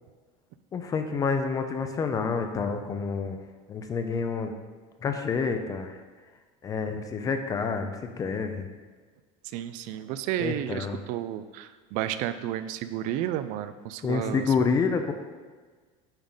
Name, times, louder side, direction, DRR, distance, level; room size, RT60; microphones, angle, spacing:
voice 1, 0.7-3.4 3.7-4.5 5.0-6.0 6.6-8.7 10.4-11.0 14.0-15.1, left 5 dB, 20° left, 7 dB, 0.5 m, -28 dB
voice 2, 9.5-14.5, right 12 dB, 50° right, 12 dB, 0.4 m, -32 dB
8.9 x 3.7 x 5.5 m, 1.4 s
cardioid pair, 165°, 17 cm